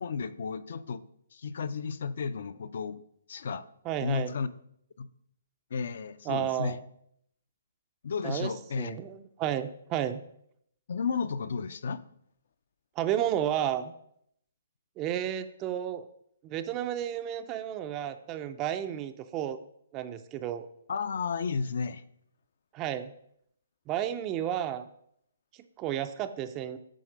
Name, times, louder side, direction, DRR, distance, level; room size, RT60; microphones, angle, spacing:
voice 1, 0.0-1.0 1.3-3.0 3.3-3.6 4.0-4.5 5.0-5.1 5.7-6.8 8.0-9.0 10.9-12.0 20.9-22.0, left 5 dB, 60° left, 15 dB, 0.4 m, -33 dB
voice 2, 3.9-4.3 6.3-6.8 8.2-10.2 13.0-13.9 15.0-16.1 16.4-19.6 19.9-20.7 22.7-23.1 23.9-24.9 25.8-26.8, right 10 dB, 20° right, 9 dB, 0.3 m, -32 dB
7.5 x 3.6 x 5.1 m, 0.71 s
hypercardioid pair, 155°, 0 cm